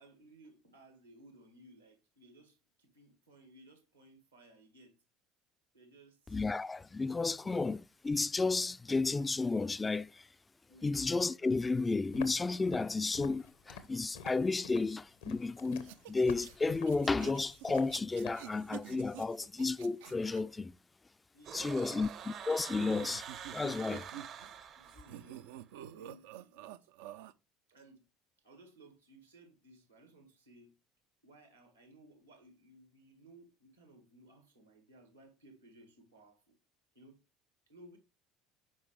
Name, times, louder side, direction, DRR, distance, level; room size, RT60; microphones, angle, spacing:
voice 1, 0.0-4.9 5.7-6.4 7.2-7.5 10.7-11.0 21.3-22.2 24.1-24.3 24.8-26.8 27.7-28.1 28.4-30.7 31.2-36.6 37.0-37.2 37.7-38.0, right 1 dB, 85° right, 1.7 m, -60 dB
voice 2, 6.3-10.3 10.8-20.7 21.5-23.3 23.5-24.1, left 3 dB, 20° left, 0.3 m, -32 dB
Walk footsteps, 12.1-18.5, left 6 dB, 70° left, 0.9 m, -49 dB
sound 1, 15.8-20.4 22.3-24.6 24.8-27.3, right 12 dB, 70° right, 0.4 m, -49 dB
sound 2, 21.4-25.4, right 8 dB, 50° right, 0.7 m, -46 dB
8.5 x 5.2 x 3.3 m
figure-of-eight pair, 60°, 0 cm